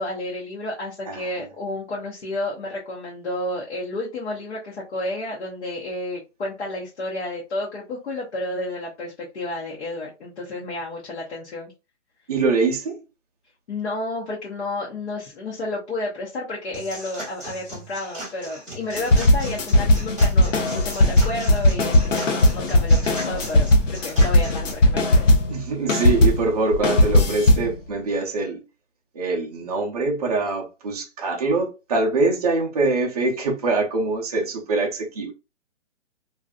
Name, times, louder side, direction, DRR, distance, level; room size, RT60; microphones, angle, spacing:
voice 1, 0.0-11.7 13.7-25.3, left 2 dB, 65° left, 0.9 m, -31 dB
voice 2, 1.1-1.5 12.3-13.0 25.5-28.6 29.1-35.3, right 3 dB, 35° right, 0.5 m, -24 dB
sound 1, 16.7-24.7, right 1 dB, ahead, 0.8 m, -38 dB
sound 2, 19.0-25.6 25.9-27.7, left 1 dB, 90° left, 0.8 m, -18 dB
2.6 x 2.3 x 2.2 m
hypercardioid pair, 155°, 37 cm